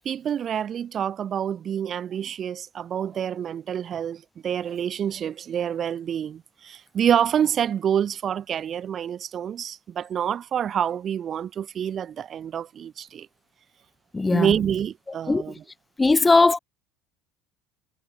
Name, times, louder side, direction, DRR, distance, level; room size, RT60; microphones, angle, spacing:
voice 1, 0.0-13.3 14.3-15.5, right 9 dB, 40° right, 0.5 m, -27 dB
voice 2, 14.1-14.5 15.3-15.4 16.0-16.6, left 3 dB, 15° left, 0.5 m, -18 dB
supercardioid pair, 120°, 0 cm